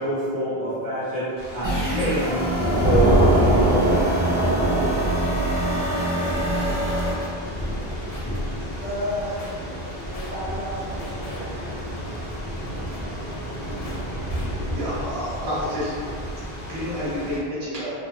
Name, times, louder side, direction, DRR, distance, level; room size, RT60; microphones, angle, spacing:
voice 1, 0.0-2.4 2.7-4.1, right 2 dB, 10° left, -13 dB, 1.2 m, -25 dB
Thunder / Rain, 1.4-17.4, equal, 70° left, 1.3 m, -27 dB
sound 1, 1.6-7.1, right 1 dB, 85° left, 1.5 m, -25 dB
sound 2, 5.5-5.6 6.0-6.1 6.4-7.3 7.6-8.4 8.7-9.5 9.9-10.3 10.7-11.4 11.8-13.0 13.3-14.0 14.3-14.5, left 2 dB, 45° left, 0.5 m, -44 dB
voice 2, 8.8-9.5 10.0-11.8, equal, 40° right, -12 dB, 0.8 m, -32 dB
voice 3, 14.7-15.9 16.7-17.9, left 1 dB, 80° right, -11 dB, 1.5 m, -29 dB
3.5 x 2.8 x 2.4 m, 2.4 s
omnidirectional pair, 1.0 m